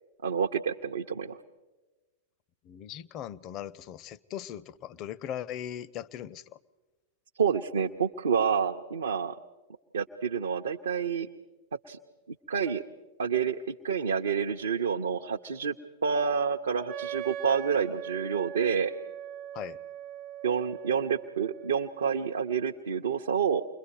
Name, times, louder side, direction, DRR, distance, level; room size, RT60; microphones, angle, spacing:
voice 1, 0.2-1.4 7.4-9.3 9.9-11.3 11.9-12.0 12.5-12.8 13.2-15.7 16.0-18.9 20.4-23.6, right 7 dB, 70° right, 2 dB, 0.7 m, -28 dB
voice 2, 2.6-6.4 19.5-19.8, left 10 dB, 40° left, 19 dB, 0.6 m, -39 dB
Wind instrument woodwind instrument, 16.9-22.5, right 10 dB, 30° right, 0.6 m, -41 dB
29.0 x 22.5 x 4.6 m, 1.2 s
figure-of-eight pair, 90°, 0 cm